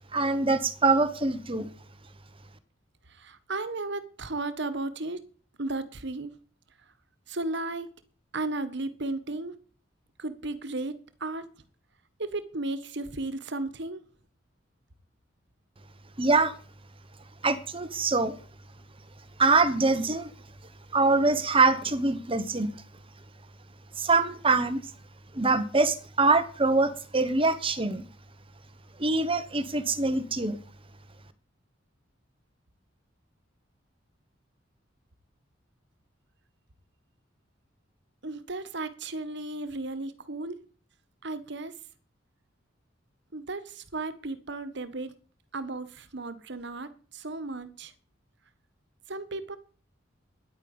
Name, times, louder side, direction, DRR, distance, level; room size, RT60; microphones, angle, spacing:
voice 1, 0.1-1.7 16.2-16.5 17.4-18.4 19.4-20.3 20.9-22.7 24.0-24.8 25.3-28.0 29.0-30.6, right 3 dB, 30° right, 1.2 m, -24 dB
voice 2, 3.1-5.2 5.6-6.3 7.3-7.9 8.3-9.5 10.2-11.5 12.2-14.0 38.2-40.6 41.2-41.7 43.3-45.1 45.5-47.9 49.1-49.6, right 2 dB, 65° right, 1.5 m, -34 dB
10.5 x 9.1 x 8.8 m
head